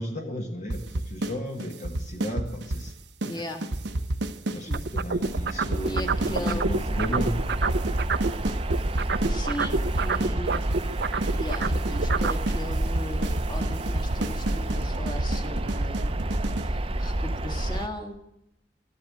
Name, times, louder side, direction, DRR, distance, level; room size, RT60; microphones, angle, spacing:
voice 1, 0.0-2.9 3.2-3.4 4.5-7.4, equal, 45° left, 3 dB, 1.5 m, -34 dB
sound 1, 0.7-1.3 1.6-2.9 3.2-3.4 3.6-6.8 7.2-7.3 7.6-9.3 9.6-10.9 11.2-11.3 11.6-16.7, right 1 dB, 85° right, 1.0 m, -30 dB
voice 2, 3.2-3.7 4.5-4.8 5.8-6.7 8.2-8.3 9.2-10.7 11.3-16.2 16.5-18.2, left 1 dB, 25° left, 5 dB, 1.8 m, -38 dB
sound 2, 4.7-8.4 8.7-12.4, right 4 dB, 65° right, 0.7 m, -28 dB
sound 3, 5.2-17.9, right 1 dB, 35° right, 0.8 m, -29 dB
14.0 x 11.0 x 8.4 m, 0.81 s
head